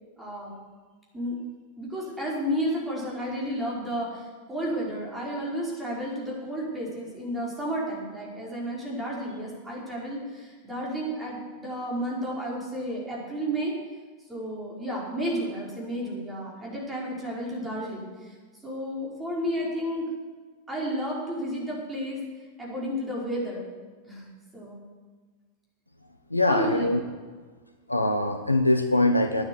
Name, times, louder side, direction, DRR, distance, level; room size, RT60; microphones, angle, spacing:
voice 1, 0.2-0.5 1.1-1.4 1.8-13.7 14.3-18.3 18.6-20.1 20.7-22.2 22.6-23.6 24.1-24.8 26.5-26.9, equal, 10° right, -4 dB, 5.2 m, -32 dB
voice 2, 26.3-27.0 27.9-29.4, left 2 dB, 85° left, 6 dB, 0.8 m, -23 dB
12.0 x 9.4 x 8.2 m, 1.4 s
figure-of-eight pair, 90°, 0 cm